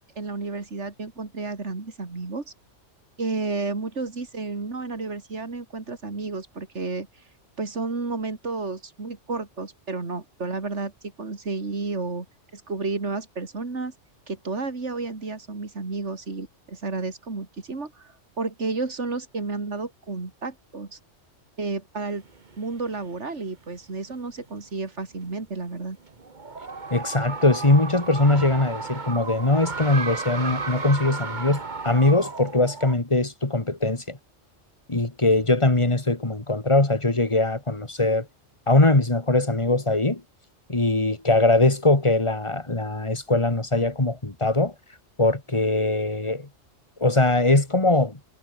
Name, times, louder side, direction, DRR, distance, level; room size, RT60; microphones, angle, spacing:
voice 1, 0.2-2.5 3.2-7.1 7.6-10.9 11.2-12.3 12.5-13.9 14.3-21.0 21.6-22.2 22.6-26.0, right 3 dB, 70° right, 3.2 m, -31 dB
sound 1, 22.1-23.1 23.7-23.8 24.1-24.2 25.8-32.9, right 4 dB, 40° right, 1.6 m, -34 dB
voice 2, 26.9-34.2 34.9-38.3 38.7-40.2 40.7-44.7 45.2-46.5 47.0-48.2, left 2 dB, 25° left, 2.4 m, -21 dB
omnidirectional pair, 1.2 m